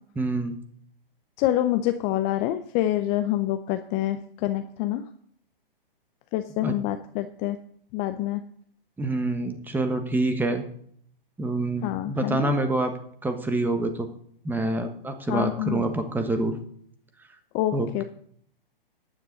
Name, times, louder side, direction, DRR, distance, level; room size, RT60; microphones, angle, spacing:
voice 1, 0.2-0.5 6.6-6.8 9.0-10.6 11.4-12.9 13.2-14.1 14.4-16.6 17.7-18.0, right 2 dB, 5° right, 7 dB, 1.2 m, -26 dB
voice 2, 1.4-5.0 6.3-7.6 7.9-8.4 11.8-12.5 15.3-15.9 17.5-18.0, left 13 dB, 25° left, 9 dB, 0.6 m, -26 dB
13.5 x 9.7 x 4.0 m, 0.63 s
hypercardioid pair, 125°, 29 cm